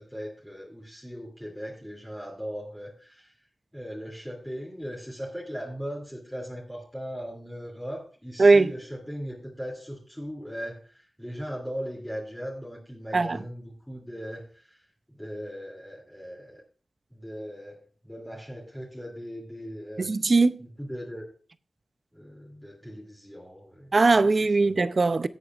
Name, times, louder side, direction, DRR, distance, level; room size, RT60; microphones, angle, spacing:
voice 1, 0.0-3.4 3.7-16.6 17.1-20.1 20.6-21.3 22.1-24.7, equal, 5° left, 2.9 m, -39 dB
voice 2, 20.0-20.6 23.9-25.3, right 3 dB, 45° right, 0.6 m, -20 dB
17.0 x 8.4 x 2.5 m
wide cardioid pair, 95°, 0 cm